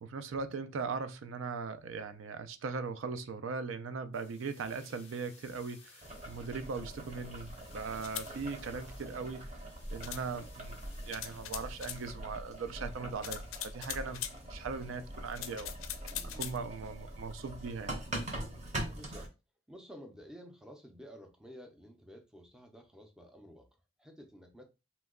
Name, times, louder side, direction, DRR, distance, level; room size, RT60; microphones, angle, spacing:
voice 1, 0.0-9.5 9.9-10.8 11.0-14.2 14.5-15.7 16.4-18.0, right 4 dB, 75° right, 0.4 m, -39 dB
sound 1, 4.1-12.1, left 5 dB, 30° left, 0.7 m, -59 dB
Boiling, 6.0-19.3, right 1 dB, 35° right, 0.7 m, -43 dB
sound 2, 8.0-8.3 10.0-10.2 11.1-12.0 13.2-14.4 15.3-16.6, left 11 dB, 85° left, 0.4 m, -41 dB
voice 2, 8.6-9.1 16.1-16.5 18.9-19.3 19.7-23.7 24.0-24.6, equal, 5° right, 0.4 m, -52 dB
3.0 x 2.2 x 3.5 m
head